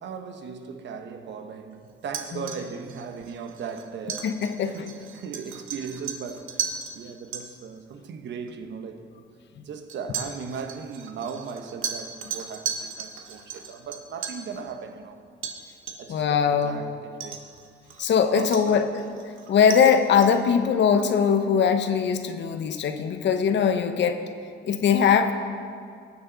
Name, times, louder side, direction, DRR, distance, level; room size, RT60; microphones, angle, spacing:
voice 1, 0.0-6.7 6.9-9.1 9.6-15.2 16.0-17.4 18.3-18.9 19.9-20.1, right 6 dB, 65° right, 1.0 m, -37 dB
sound 1, 2.0-7.0 7.3-7.4 8.5-8.6 9.9-14.5 15.4-15.6 15.9-16.2 16.6-16.7 17.2-18.1 18.5-20.5, right 7 dB, 90° right, 1.1 m, -36 dB
voice 2, 4.2-4.9 16.1-16.8 18.0-18.9 19.5-24.2 24.6-25.3, left 7 dB, 65° left, 0.9 m, -21 dB
19.0 x 6.9 x 4.0 m
cardioid pair, 90°, 20 cm